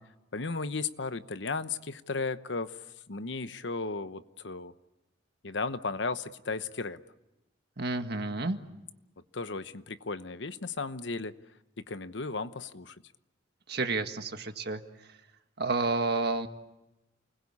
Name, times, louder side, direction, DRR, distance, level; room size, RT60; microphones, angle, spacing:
voice 1, 0.3-4.7 5.4-7.0 9.3-11.3 11.8-13.0, left 4 dB, 70° left, 12 dB, 1.0 m, -35 dB
voice 2, 7.8-8.6 13.7-15.2 15.6-16.5, right 3 dB, 55° right, 7 dB, 1.8 m, -30 dB
29.0 x 21.0 x 8.6 m, 0.97 s
head